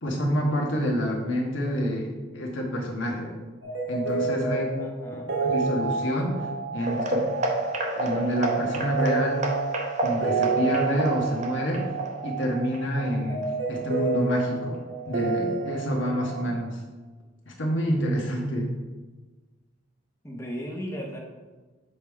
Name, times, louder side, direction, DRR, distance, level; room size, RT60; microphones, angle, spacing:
voice 1, 0.0-2.1 2.3-3.4 3.9-4.7 5.4-6.5 6.7-7.3 7.9-9.4 10.0-11.9 12.2-13.4 13.7-14.8 15.1-16.8 17.5-18.7, equal, 65° left, -1 dB, 1.4 m, -27 dB
sound 1, 3.6-16.6, right 4 dB, 65° right, 1.2 m, -30 dB
voice 2, 4.8-5.3 20.2-21.2, equal, 15° left, -1 dB, 0.9 m, -36 dB
sound 2, 6.8-13.4 13.7-14.0 14.4-14.5 15.0-15.1, right 1 dB, 35° right, 0.7 m, -30 dB
7.0 x 3.6 x 4.6 m, 1.3 s
head